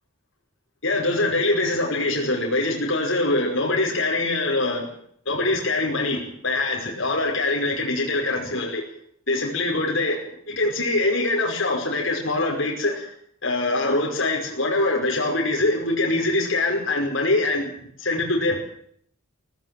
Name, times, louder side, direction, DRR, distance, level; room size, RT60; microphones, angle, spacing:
voice 1, 0.8-4.9 5.3-8.8 9.3-10.2 10.5-13.1 13.4-17.7 18.0-18.6, left 2 dB, 70° left, -1 dB, 5.4 m, -23 dB
17.5 x 16.5 x 9.2 m, 0.65 s
head